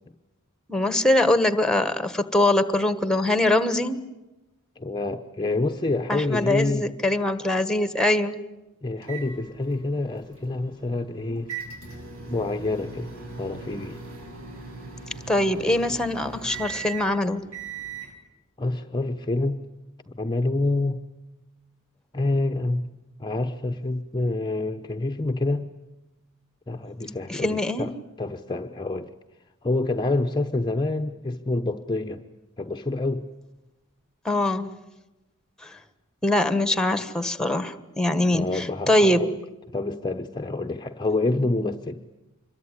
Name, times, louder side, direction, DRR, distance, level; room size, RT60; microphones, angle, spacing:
voice 1, 0.7-4.0 6.1-8.3 15.3-17.4 27.3-27.9 34.2-34.7 35.6-35.8 36.2-39.2, left 1 dB, 5° left, 12 dB, 1.4 m, -23 dB
voice 2, 4.8-6.9 8.8-11.5 12.3-13.1 13.4-14.0 18.6-19.6 20.1-21.0 22.1-22.9 23.2-25.7 26.7-29.1 29.6-32.2 32.6-33.3 38.3-39.3 39.7-42.0, left 2 dB, 20° left, 6 dB, 0.9 m, -27 dB
sound 1, 9.0-18.1, right 5 dB, 70° right, 7.1 m, -40 dB
26.0 x 23.0 x 9.7 m, 1.0 s
head